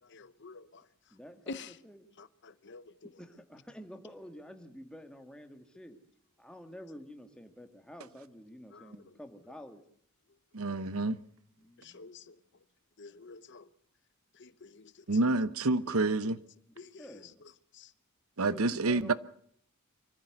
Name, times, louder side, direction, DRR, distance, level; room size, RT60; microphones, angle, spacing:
voice 1, 0.0-1.1 1.5-1.8 2.2-3.1 8.7-9.2 11.8-12.6 13.0-13.7 14.3-15.4 15.9-16.3 16.8-17.9, left 4 dB, 55° left, 0.9 m, -49 dB
voice 2, 1.1-2.1 3.2-6.0 6.4-9.8 11.6-12.1 17.0-17.4 18.5-19.1, equal, 5° left, 2.0 m, -49 dB
voice 3, 10.5-11.2 15.1-16.4 18.4-19.1, right 3 dB, 75° right, 0.9 m, -28 dB
24.5 x 14.5 x 7.9 m
head